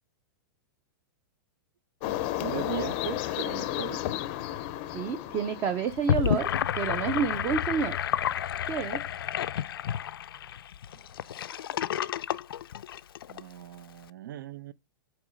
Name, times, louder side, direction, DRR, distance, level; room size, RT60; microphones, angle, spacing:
sound 1, 2.0-6.4, left 13 dB, 30° left, 0.6 m, -33 dB
voice 1, 2.4-4.0 10.9-11.0 13.3-14.7, right 12 dB, 65° right, 0.7 m, -38 dB
voice 2, 4.9-6.5 6.7-7.9 8.7-9.0, right 6 dB, 20° right, 0.5 m, -29 dB
Gurgling / Sink (filling or washing), 5.9-13.4, left 10 dB, 85° left, 0.6 m, -30 dB
8.7 x 3.1 x 6.3 m
supercardioid pair, 175°, 12 cm